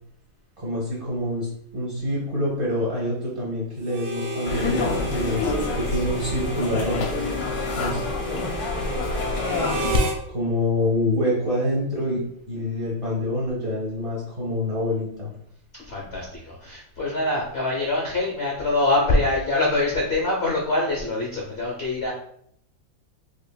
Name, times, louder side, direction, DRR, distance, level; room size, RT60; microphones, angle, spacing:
voice 1, 0.6-7.3 7.8-8.0 10.3-15.3, left 1 dB, 35° right, -7 dB, 0.5 m, -26 dB
Harmonica, 3.9-10.2, right 1 dB, 85° right, 1.6 m, -32 dB
sound 1, 4.4-10.0, left 3 dB, 85° left, 1.4 m, -27 dB
voice 2, 7.5-8.1 15.8-22.1, left 2 dB, 65° left, -3 dB, 0.6 m, -24 dB
4.8 x 2.7 x 2.3 m, 0.68 s
omnidirectional pair, 2.2 m